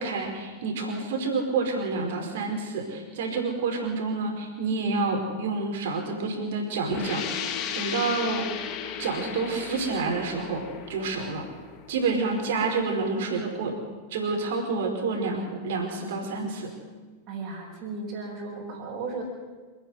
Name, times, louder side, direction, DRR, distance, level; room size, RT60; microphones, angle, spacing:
voice 1, 0.0-8.5 9.0-11.5 11.9-13.8 14.1-16.7, right 3 dB, 55° right, 2 dB, 4.9 m, -28 dB
sound 1, 6.9-12.4, left 8 dB, 35° left, 2.0 m, -35 dB
voice 2, 17.3-19.2, right 4 dB, 40° right, -6 dB, 6.2 m, -35 dB
27.0 x 10.0 x 9.7 m, 1.4 s
figure-of-eight pair, 90°, 0 cm